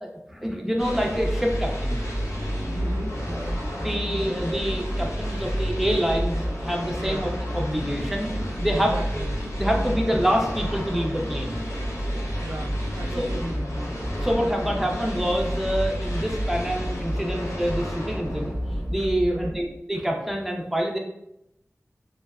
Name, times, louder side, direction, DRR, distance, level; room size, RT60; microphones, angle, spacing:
voice 1, 0.0-2.0 3.8-9.3 9.6-11.6 12.5-12.6 13.2-13.3 14.1-18.6 18.9-21.0, equal, 5° right, 0 dB, 0.4 m, -27 dB
sound 1, 0.8-19.8, equal, 80° left, 0.6 m, -29 dB
voice 2, 2.7-3.6 7.0-7.3 8.7-9.3 12.4-14.3 14.6-14.9 19.2-19.6, right 2 dB, 85° right, 1 dB, 0.3 m, -37 dB
2.6 x 2.0 x 2.3 m, 0.81 s
wide cardioid pair, 70°, 5 cm